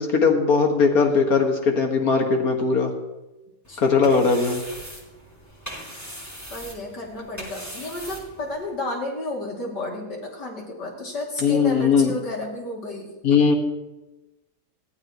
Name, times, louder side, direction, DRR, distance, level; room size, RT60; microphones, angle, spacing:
voice 1, 0.0-2.9 3.8-4.6 11.4-12.1 13.2-13.5, left 5 dB, 55° left, 3 dB, 2.2 m, -19 dB
sound 1, 3.6-8.8, equal, 10° left, 2.6 m, -40 dB
voice 2, 3.7-4.2 6.5-13.1, left 2 dB, 75° left, -1 dB, 3.4 m, -32 dB
20.0 x 14.5 x 3.1 m, 1.1 s
omnidirectional pair, 1.8 m